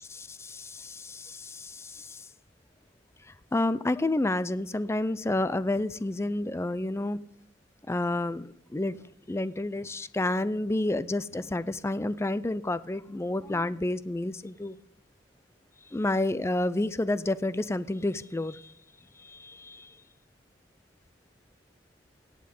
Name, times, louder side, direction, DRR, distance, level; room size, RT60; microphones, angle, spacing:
voice 1, 0.2-2.2 3.5-7.2 7.9-9.0 9.3-14.8 15.9-18.6 19.2-19.9, left 2 dB, 15° left, 16 dB, 0.4 m, -30 dB
17.0 x 8.6 x 5.3 m, 0.73 s
head